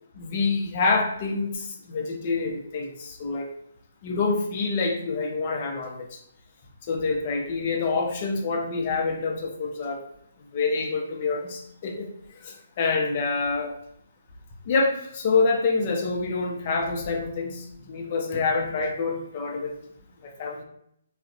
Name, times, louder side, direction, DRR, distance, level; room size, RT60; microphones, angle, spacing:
voice 1, 0.2-3.5 4.0-6.2 6.9-10.0 10.5-12.1 12.4-13.7 14.7-19.7 20.2-20.6, left 4 dB, 40° left, 2 dB, 0.5 m, -27 dB
2.5 x 2.0 x 2.4 m, 0.73 s
figure-of-eight pair, 140°, 0 cm